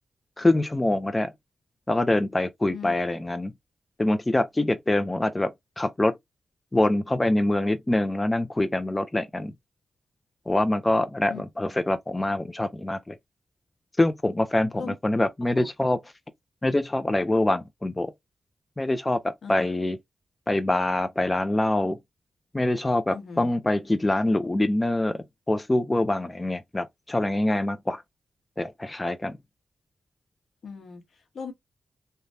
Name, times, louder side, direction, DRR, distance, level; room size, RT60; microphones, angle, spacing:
voice 1, 0.4-1.3 1.9-3.5 4.0-6.2 6.7-9.5 10.5-13.2 14.0-16.0 16.6-18.1 18.8-20.0 20.5-22.0 22.5-28.0 28.6-29.4, left 1 dB, 20° left, 0.5 m, -25 dB
voice 2, 23.1-23.5 30.6-31.0 31.3-31.5, left 5 dB, 75° left, 1.0 m, -38 dB
3.2 x 2.2 x 2.6 m
cardioid pair, 65°, 0 cm